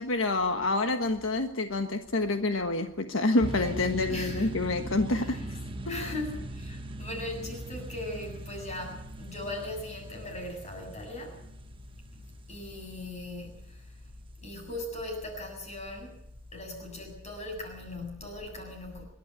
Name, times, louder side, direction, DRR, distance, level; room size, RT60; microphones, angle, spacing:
voice 1, 0.0-5.4 5.9-6.1, left 2 dB, 80° left, 6 dB, 1.4 m, -28 dB
voice 2, 3.3-3.8 4.1-4.5 5.2-5.4 5.9-11.4 12.5-13.8 14.4-16.2 16.5-19.0, left 1 dB, 35° left, 3 dB, 7.4 m, -39 dB
sound 1, 3.4-14.3, right 1 dB, 25° right, 1.3 m, -41 dB
25.5 x 12.0 x 8.9 m, 0.78 s
head